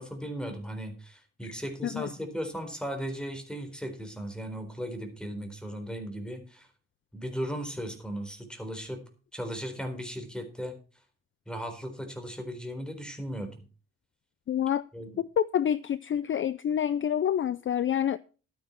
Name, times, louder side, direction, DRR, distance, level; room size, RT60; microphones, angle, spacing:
voice 1, 0.0-6.7 7.1-9.0 9.3-10.8 11.5-13.6 14.9-15.2, equal, 5° left, 4.1 m, -37 dB
voice 2, 14.5-14.8 15.2-18.2, left 9 dB, 40° left, 0.5 m, -27 dB
12.5 x 9.7 x 4.5 m
cardioid pair, 90°, 30 cm